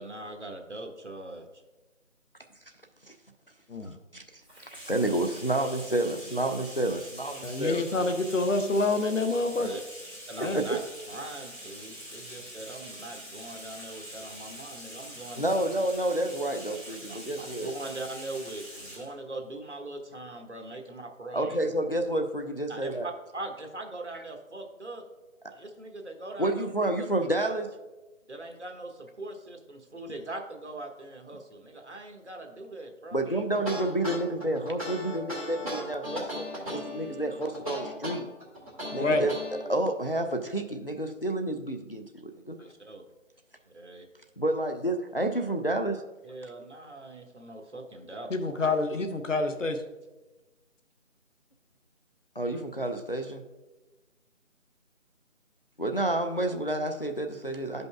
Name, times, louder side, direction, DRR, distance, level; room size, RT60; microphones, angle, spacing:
voice 1, 0.0-1.5 9.5-9.8 10.3-10.8 11.1-15.4 17.1-21.6 22.7-25.0 25.5-26.7 28.3-33.3 42.6-43.0 43.7-44.0 46.2-48.3, right 2 dB, 60° right, 3 dB, 1.1 m, -41 dB
voice 2, 4.1-7.9 10.5-10.8 15.4-17.7 21.3-23.1 26.4-27.7 33.1-38.3 38.9-39.3 39.7-42.6 44.4-46.0 52.4-53.4 55.8-57.9, right 1 dB, 45° left, 5 dB, 0.4 m, -29 dB
Bathtub (filling or washing), 4.4-19.1, equal, 5° right, 1.3 m, -44 dB
voice 3, 7.4-9.7 10.4-10.6 38.9-39.3 48.3-49.8, left 2 dB, 65° left, 7 dB, 0.9 m, -27 dB
sound 1, 33.5-39.6, equal, 25° right, 1.7 m, -37 dB
12.0 x 5.3 x 2.3 m, 1.1 s
figure-of-eight pair, 165°, 40 cm